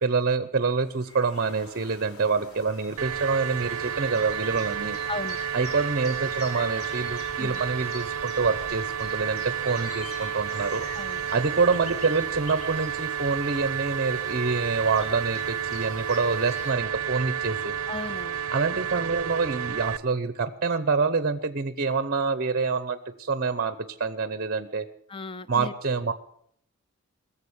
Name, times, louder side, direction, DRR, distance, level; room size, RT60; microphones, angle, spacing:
voice 1, 0.0-5.0 5.5-10.9 11.3-17.7 18.5-24.8 25.5-26.1, right 4 dB, 45° right, 13 dB, 0.8 m, -26 dB
sound 1, 0.7-16.7, left 3 dB, 85° left, 2.0 m, -46 dB
sound 2, 3.0-20.0, right 8 dB, 80° right, 0.5 m, -31 dB
voice 2, 5.1-5.4 7.4-7.6 10.9-11.3 17.9-18.5 25.1-25.7, left 3 dB, 25° left, 15 dB, 0.6 m, -36 dB
21.0 x 7.2 x 8.6 m, 0.67 s
head